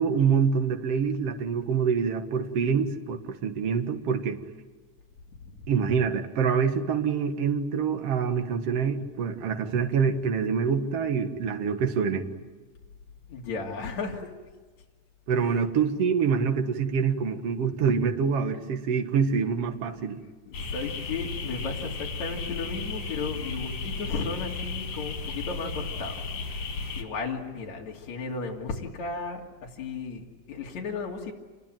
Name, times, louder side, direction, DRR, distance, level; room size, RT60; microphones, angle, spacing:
voice 1, 0.0-4.4 5.7-12.3 15.3-20.2, right 6 dB, 55° right, 6 dB, 2.6 m, -26 dB
voice 2, 13.3-14.3 15.4-15.6 19.8-20.0 20.5-26.2 27.0-31.3, left 4 dB, 70° left, -1 dB, 4.0 m, -35 dB
sound 1, 20.5-27.0, left 4 dB, 90° left, 4.5 m, -34 dB
28.0 x 21.5 x 9.1 m, 1.3 s
omnidirectional pair, 3.4 m